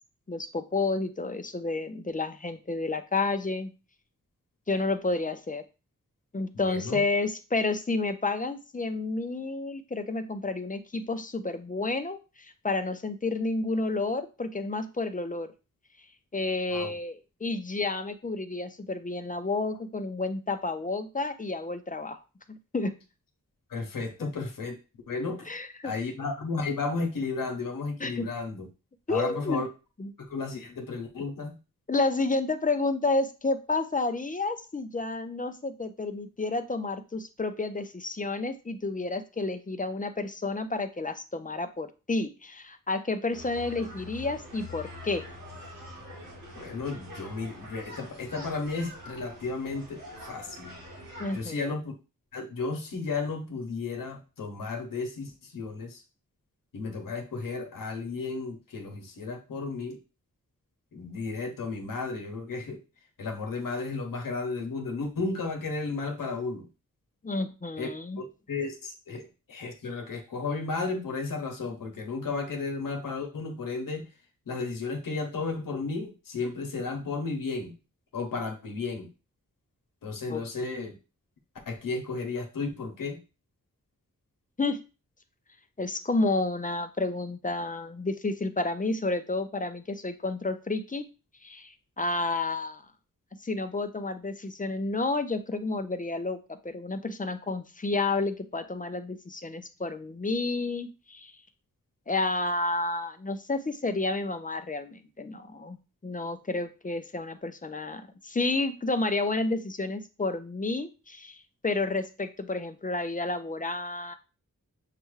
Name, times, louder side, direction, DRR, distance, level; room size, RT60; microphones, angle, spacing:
voice 1, 0.3-3.7 4.7-5.6 6.3-15.5 16.3-22.2 22.5-22.9 24.2-24.3 25.5-25.9 28.0-28.3 29.1-29.6 30.0-30.1 31.9-45.2 51.2-51.6 67.2-68.2 80.3-80.4 84.6-84.8 85.8-91.0 91.4-92.8 93.4-101.3 102.1-105.8 106.0-114.1, left 3 dB, 25° left, 9 dB, 0.6 m, -30 dB
voice 2, 6.5-7.0 16.7-16.9 23.7-24.8 25.1-25.5 25.8-28.7 29.1-29.7 30.2-31.6 46.5-50.0 50.3-50.7 51.3-51.9 52.3-56.0 56.7-60.0 60.9-62.8 63.2-66.7 67.8-67.9 68.2-69.2 69.5-74.1 74.5-77.7 78.1-79.1 80.0-80.9 81.7-83.2, left 3 dB, 85° left, 3 dB, 0.9 m, -33 dB
sound 1, 43.3-51.4, left 1 dB, 80° right, 1.8 m, -45 dB
6.7 x 2.3 x 3.1 m, 0.31 s
cardioid pair, 50°, 32 cm